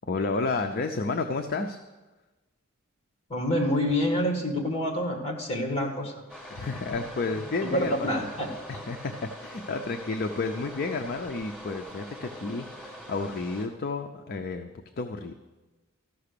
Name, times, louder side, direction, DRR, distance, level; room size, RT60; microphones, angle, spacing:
voice 1, 0.0-1.8 6.5-8.1 8.7-14.7 15.0-15.3, left 3 dB, 45° left, 6 dB, 0.5 m, -31 dB
voice 2, 3.3-6.2 7.6-8.5, equal, 25° left, 2 dB, 1.8 m, -27 dB
sound 1, 6.3-13.7, equal, 5° right, 1.7 m, -43 dB
13.5 x 5.8 x 6.7 m, 1.2 s
head